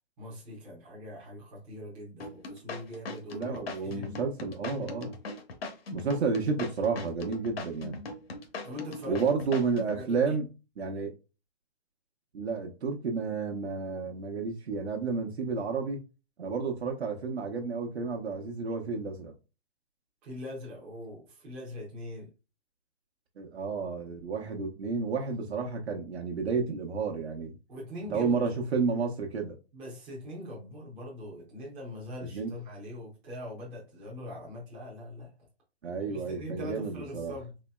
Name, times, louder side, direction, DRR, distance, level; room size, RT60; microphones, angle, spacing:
voice 1, 0.2-4.2 8.6-9.2 9.9-10.4 20.2-22.3 27.7-28.4 29.7-35.3 36.1-37.5, left 1 dB, 5° right, 0.4 m, -42 dB
sound 1, 2.2-10.0, left 3 dB, 65° left, 1.0 m, -39 dB
voice 2, 3.3-5.1 5.9-8.0 9.0-10.5 10.8-11.1 12.3-16.0 16.4-19.3 23.4-27.5 28.1-29.6 32.3-32.5 35.8-37.3, right 4 dB, 85° right, 0.8 m, -31 dB
4.1 x 3.0 x 2.2 m
hypercardioid pair, 155°, 32 cm